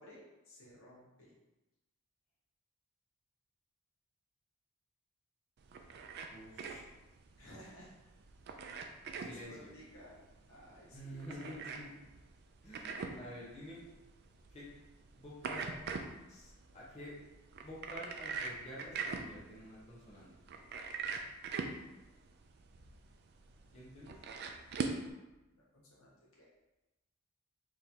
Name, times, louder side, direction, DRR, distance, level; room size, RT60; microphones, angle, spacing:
voice 1, 0.0-1.3 7.4-7.9 9.2-10.2 10.5-11.5 25.5-26.5, equal, 70° left, -5 dB, 1.1 m, -56 dB
sound 1, 5.6-25.1, right 4 dB, 50° right, 0.3 m, -43 dB
voice 2, 6.3-6.8 9.2-9.7 10.9-12.0 12.6-13.9 14.5-14.7 15.1-15.7 16.3-17.1 17.6-20.3 23.7-24.2, equal, 30° left, -7 dB, 1.0 m, -49 dB
4.1 x 3.1 x 2.8 m, 1.0 s
head